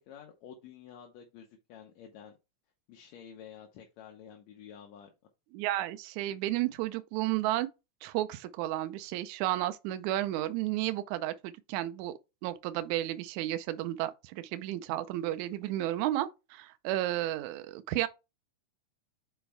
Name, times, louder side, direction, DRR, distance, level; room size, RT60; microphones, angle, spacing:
voice 1, 0.0-2.3 2.9-5.1, left 8 dB, 70° left, 2.0 m, -50 dB
voice 2, 5.5-7.7 8.0-12.1 12.4-18.1, right 14 dB, 80° right, 1.9 m, -32 dB
7.1 x 4.4 x 3.4 m
omnidirectional pair, 3.6 m